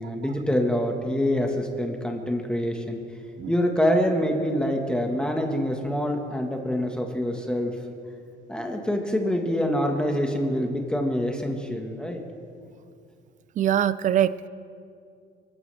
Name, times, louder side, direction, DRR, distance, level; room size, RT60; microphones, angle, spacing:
voice 1, 0.0-3.0 3.5-7.7 8.5-12.2, equal, 5° left, 2 dB, 1.4 m, -25 dB
voice 2, 13.6-14.5, right 10 dB, 50° right, 17 dB, 0.5 m, -23 dB
23.0 x 13.5 x 3.4 m, 2.4 s
cardioid pair, 110°, 17 cm